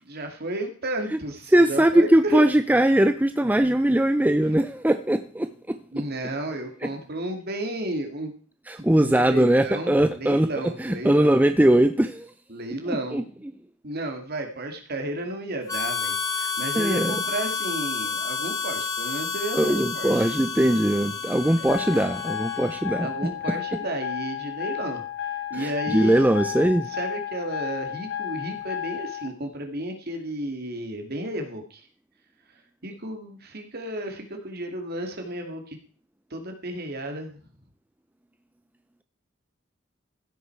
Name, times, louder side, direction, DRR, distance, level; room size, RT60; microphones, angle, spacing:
voice 1, 0.0-2.4 5.9-8.3 8.8-11.4 12.5-13.2 13.8-20.3 21.6-21.7 23.0-26.3 26.9-31.9 32.8-35.8 36.3-37.4, right 1 dB, 50° right, 4 dB, 2.5 m, -33 dB
voice 2, 1.5-5.8 8.7-10.5 10.8-12.3 13.1-13.2 16.8-17.1 19.5-23.1 25.5-26.9, right 1 dB, 10° right, 10 dB, 0.5 m, -20 dB
Harmonica, 15.7-23.0, left 5 dB, 20° left, 1.8 m, -30 dB
sound 1, 21.7-29.3, left 10 dB, 60° left, 1.8 m, -33 dB
15.5 x 8.4 x 4.7 m, 0.42 s
head